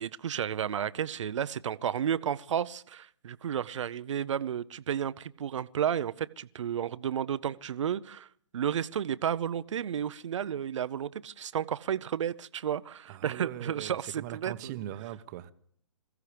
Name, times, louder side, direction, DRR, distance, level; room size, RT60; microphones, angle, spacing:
voice 1, 0.0-8.3 8.5-14.7, right 9 dB, 65° right, 0.7 m, -32 dB
voice 2, 13.0-15.5, right 13 dB, 35° right, 1.0 m, -40 dB
27.0 x 15.5 x 3.4 m
hypercardioid pair, 140°, 17 cm